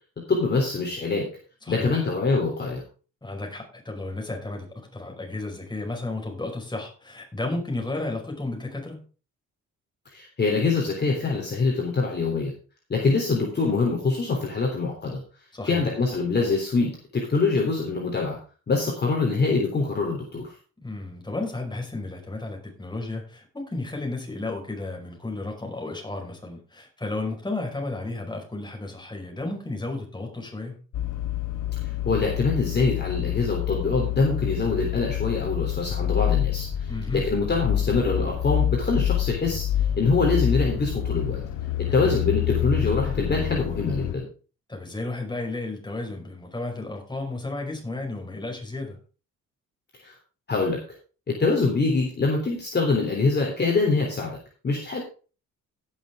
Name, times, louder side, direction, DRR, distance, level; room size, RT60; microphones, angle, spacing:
voice 1, 0.3-1.3 1.7-2.8 10.1-12.5 12.9-15.2 15.7-18.4 18.7-20.5 32.0-39.7 40.0-41.4 41.8-44.3 50.0-50.1 50.5-50.8 51.3-54.4 54.6-55.0, left 3 dB, 35° left, -1 dB, 3.3 m, -24 dB
voice 2, 1.7-2.0 3.2-9.0 15.5-15.8 20.8-30.8 36.9-37.3 42.0-42.2 44.7-49.0, left 2 dB, 15° left, 1 dB, 5.3 m, -33 dB
sound 1, 30.9-44.1, left 11 dB, 80° left, 1.0 m, -27 dB
17.0 x 6.7 x 3.7 m, 0.36 s
cardioid pair, 90°, 30 cm